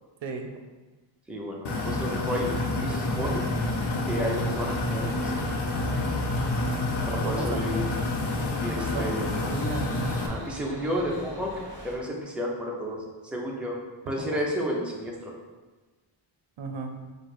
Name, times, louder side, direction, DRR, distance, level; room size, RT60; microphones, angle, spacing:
voice 1, 1.3-2.5 2.8-3.5 4.0-5.4 7.1-7.8 8.6-9.4 10.1-11.5 11.8-13.0 13.3-13.8 14.1-15.3, equal, ahead, -2 dB, 0.6 m, -31 dB
sound 1, 1.6-10.3, left 2 dB, 60° left, 0.7 m, -28 dB
sound 2, 3.1-12.0, right 1 dB, 25° right, 1.1 m, -43 dB
voice 2, 6.7-7.6 8.8-9.0 9.3-9.9 14.2-14.4 16.6-16.9, right 4 dB, 75° right, 4 dB, 0.6 m, -35 dB
4.5 x 2.2 x 4.7 m, 1.3 s
wide cardioid pair, 115°, 46 cm